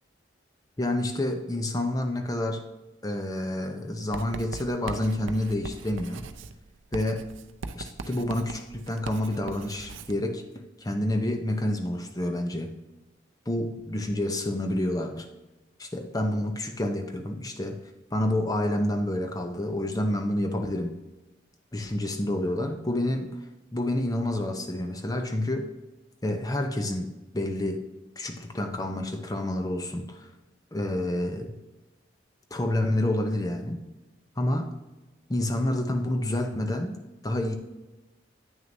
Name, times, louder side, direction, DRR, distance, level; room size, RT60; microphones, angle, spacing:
voice 1, 0.8-2.6 3.0-6.2 6.9-7.3 7.7-12.7 13.5-15.3 15.8-17.8 18.1-21.0 21.7-23.3 23.7-25.7 26.2-27.8 28.2-30.3 30.7-31.6 32.5-33.8 34.4-34.7 35.3-37.0 37.2-37.5, left 1 dB, 20° left, 5 dB, 0.7 m, -28 dB
Writing, 4.1-10.2, right 3 dB, 80° right, 0.5 m, -40 dB
9.0 x 6.3 x 2.7 m, 1.1 s
head